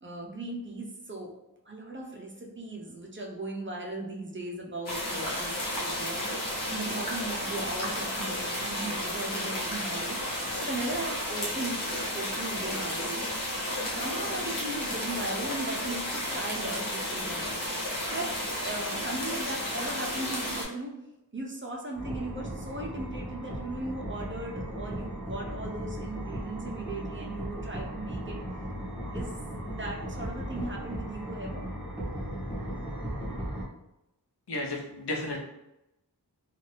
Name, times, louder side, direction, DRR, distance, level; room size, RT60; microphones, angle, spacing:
voice 1, 0.0-1.3 1.7-6.3 6.7-10.2 10.5-13.3 13.9-17.5 18.1-18.3 18.6-20.9 21.3-28.4 29.1-29.3 29.6-31.6, right 2 dB, 30° right, -1 dB, 0.6 m, -37 dB
sound 1, 4.9-20.6, left 1 dB, 50° left, 0.9 m, -32 dB
sound 2, 21.9-33.6, equal, 5° right, 0.9 m, -37 dB
voice 2, 34.5-35.4, left 2 dB, 80° left, -1 dB, 0.7 m, -33 dB
2.6 x 2.4 x 3.2 m, 0.90 s
wide cardioid pair, 75°, 40 cm